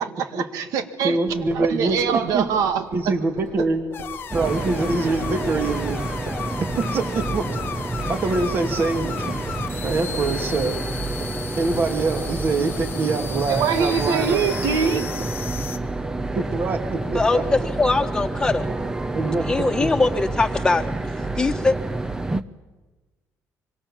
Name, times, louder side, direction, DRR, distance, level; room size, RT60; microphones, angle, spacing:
voice 1, 0.0-1.2 1.5-3.1 3.6-3.7 13.5-15.1, right 7 dB, 85° right, 9 dB, 2.0 m, -23 dB
voice 2, 1.0-2.4 2.9-3.8 4.3-6.0 6.8-7.5 8.1-9.3 9.8-10.8 11.6-14.4 16.4-17.2 19.1-19.4, right 3 dB, 40° right, 6 dB, 2.4 m, -24 dB
sound 1, 1.3-11.8 12.0-20.8, right 3 dB, 60° right, 6.7 m, -41 dB
sound 2, 3.9-15.8, left 7 dB, 40° left, 1.5 m, -35 dB
sound 3, 4.3-22.4, right 2 dB, 10° right, 0.8 m, -29 dB
voice 3, 17.1-18.7 19.5-20.9 21.4-21.8, left 3 dB, 10° left, 5 dB, 1.5 m, -21 dB
25.5 x 24.5 x 7.4 m, 1.2 s
cardioid pair, 155°, 6 cm